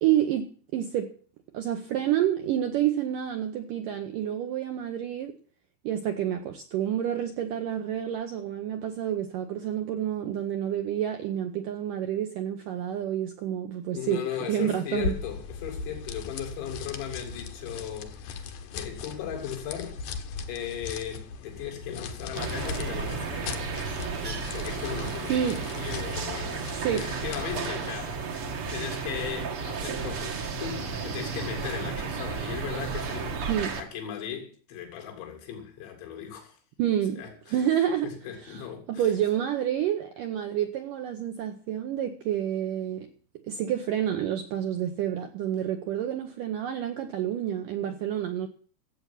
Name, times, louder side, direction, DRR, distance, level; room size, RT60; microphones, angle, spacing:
voice 1, 0.0-1.1 1.5-5.4 5.8-14.2 14.5-15.1 25.3-25.7 26.8-27.1 33.5-33.8 36.8-38.1 38.4-38.6 38.9-43.1 43.4-48.5, right 10 dB, 80° right, 1.9 m, -29 dB
voice 2, 13.9-20.0 20.5-28.2 28.7-33.5 33.8-36.6 37.2-37.6 38.0-39.1, left 9 dB, 90° left, 4.6 m, -37 dB
sound 1, 14.9-27.8, left 5 dB, 70° left, 2.0 m, -38 dB
sound 2, 22.3-33.8, right 5 dB, 60° right, 1.4 m, -33 dB
14.0 x 8.2 x 7.4 m
omnidirectional pair, 5.1 m